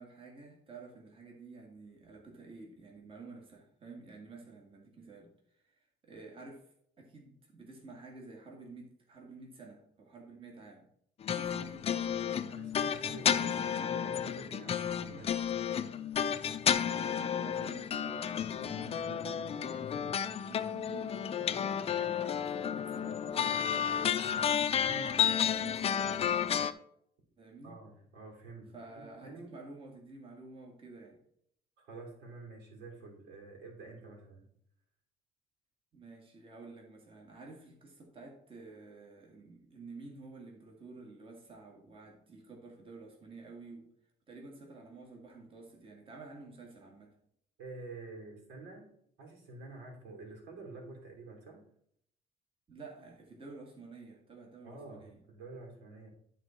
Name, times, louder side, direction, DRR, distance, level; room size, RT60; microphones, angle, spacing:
voice 1, 0.0-10.9 11.3-12.4 15.1-15.2 16.7-24.5 25.1-26.5 27.4-27.8 28.7-31.2 35.9-43.9 44.3-47.2 52.7-55.2, right 3 dB, 30° right, 0 dB, 2.0 m, -51 dB
sound 1, 11.2-26.7, left 8 dB, 35° left, 0.5 m, -32 dB
voice 2, 12.5-15.3 24.8-25.2 27.6-28.7 28.9-29.5 31.8-34.5 47.6-48.9 49.2-51.6 54.6-56.1, right 3 dB, 80° right, 0 dB, 3.0 m, -48 dB
11.5 x 4.0 x 4.4 m, 0.69 s
cardioid pair, 110°, 17 cm